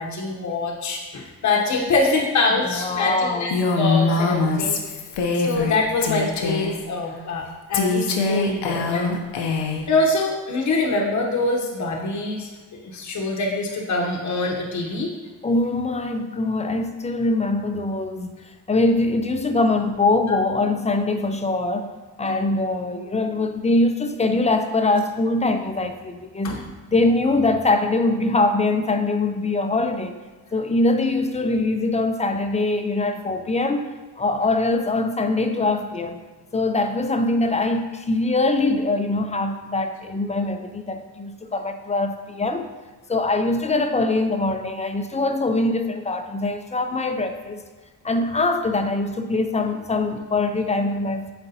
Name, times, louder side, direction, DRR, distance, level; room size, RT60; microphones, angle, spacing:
voice 1, 0.0-4.8 5.4-9.2 9.9-12.5 12.8-15.1 26.4-26.6, left 2 dB, 45° left, -1 dB, 0.9 m, -24 dB
voice 2, 2.6-3.5 15.4-18.3 18.7-21.9 22.2-26.6 26.9-30.2 30.5-36.2 36.5-42.7 43.1-47.7 48.0-51.3, left 2 dB, 15° left, 7 dB, 0.5 m, -23 dB
Female speech woman speaking, 3.5-5.8 6.0-6.8 7.7-9.9, left 4 dB, 80° left, 0.8 m, -23 dB
8.0 x 4.3 x 2.8 m, 1.3 s
cardioid pair, 85°, 40 cm